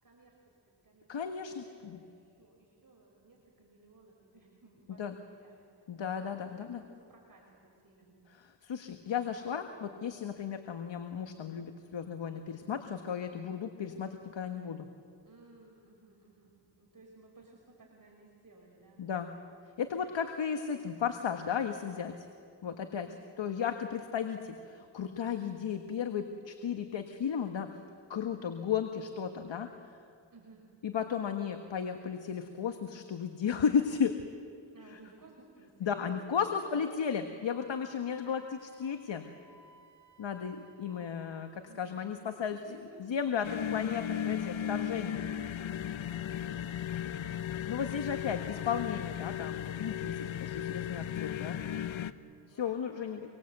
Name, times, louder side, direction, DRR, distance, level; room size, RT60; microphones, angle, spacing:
voice 1, 0.0-5.5 5.8-5.9 6.4-8.2 15.3-19.0 22.9-23.3 30.3-30.6 34.7-36.2 41.7-42.3 42.7-43.0 46.3-46.8 51.4-53.4, right 3 dB, 45° right, -1 dB, 5.6 m, -59 dB
voice 2, 1.1-2.0 5.0-5.1 5.9-6.8 8.4-14.9 19.0-19.3 19.8-22.3 22.6-23.1 23.4-27.7 28.1-29.7 30.8-34.2 35.8-39.3 40.2-42.6 43.0-45.2 47.7-51.6 52.5-53.3, left 7 dB, 70° left, 6 dB, 1.6 m, -34 dB
Wind instrument woodwind instrument, 37.5-41.3, right 3 dB, 80° right, 4.4 m, -60 dB
sound 1, 43.4-52.1, left 10 dB, 85° left, 1.0 m, -36 dB
26.5 x 23.5 x 8.1 m, 2.3 s
cardioid pair, 55°, 46 cm